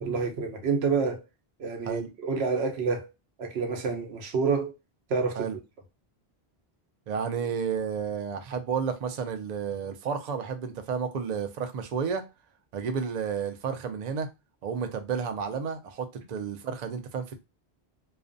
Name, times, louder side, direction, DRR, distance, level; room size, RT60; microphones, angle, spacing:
voice 1, 0.0-1.2 1.6-3.1 3.4-4.7 5.1-5.5, right 5 dB, 85° right, 0.9 m, -28 dB
voice 2, 7.1-12.2 12.7-14.3 14.6-17.4, right 6 dB, 55° right, 0.5 m, -31 dB
2.4 x 2.1 x 2.5 m
omnidirectional pair, 1.1 m